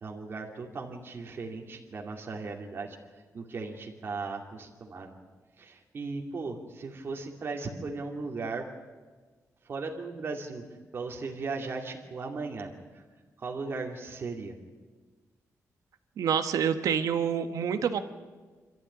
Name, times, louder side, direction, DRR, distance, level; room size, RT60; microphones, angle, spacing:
voice 1, 0.0-3.0 3.3-5.1 5.6-8.7 9.6-10.6 10.9-13.0 13.4-14.6, right 4 dB, 40° right, 1 dB, 2.5 m, -37 dB
voice 2, 16.2-18.0, right 7 dB, 85° right, 9 dB, 1.5 m, -27 dB
27.0 x 13.5 x 9.8 m, 1.4 s
wide cardioid pair, 160°, 6 cm